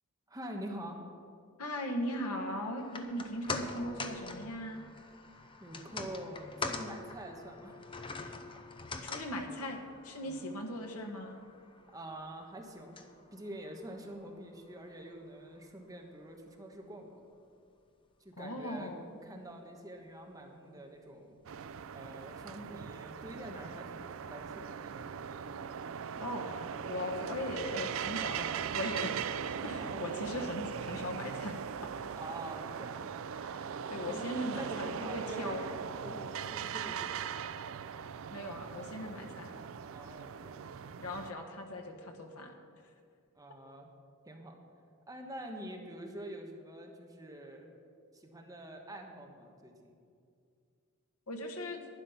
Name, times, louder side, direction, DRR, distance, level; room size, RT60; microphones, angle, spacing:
voice 1, 0.3-1.0 5.6-7.9 10.2-10.6 11.9-13.0 13.3-17.3 18.2-18.9 19.2-21.4 21.9-25.1 29.6-30.3 32.2-33.1 34.1-34.3 34.6-35.7 36.0-37.2 39.9-40.7 43.3-43.9 44.3-44.6 45.1-47.7 48.1-49.9, right 1 dB, 15° right, 2 dB, 1.2 m, -46 dB
voice 2, 1.6-4.9 9.0-11.4 18.4-19.1 26.2-26.5 26.8-31.6 33.4-35.7 38.3-39.6 41.0-42.5 51.3-51.8, left 1 dB, 85° left, 1 dB, 1.5 m, -39 dB
sound 1, 2.8-15.2 15.5-15.6, left 3 dB, 25° left, 0.7 m, -44 dB
sound 2, 21.5-41.3, right 7 dB, 65° right, 0.4 m, -40 dB
11.5 x 10.0 x 5.8 m, 2.3 s
head